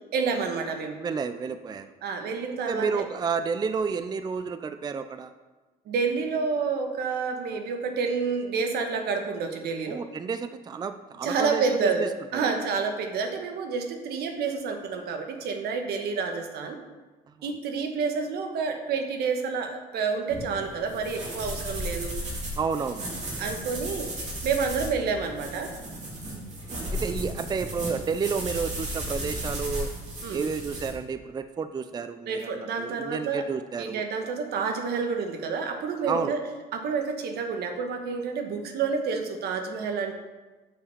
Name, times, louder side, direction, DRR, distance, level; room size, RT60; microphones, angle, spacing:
voice 1, 0.1-1.0 2.0-3.0 5.9-10.0 11.2-16.8 17.4-22.1 23.4-24.1 24.4-25.7 29.2-29.3 30.2-30.4 32.2-33.5 33.8-36.4 36.7-40.1, right 5 dB, 70° right, 5 dB, 1.3 m, -29 dB
voice 2, 1.0-1.9 2.7-5.3 9.9-12.5 22.6-23.1 26.9-29.9 30.3-34.0 36.1-36.3, right 5 dB, 25° right, 10 dB, 0.4 m, -31 dB
sound 1, 20.3-30.9, equal, 45° right, 3.1 m, -35 dB
7.4 x 5.6 x 6.6 m, 1.2 s
cardioid pair, 110°, 17 cm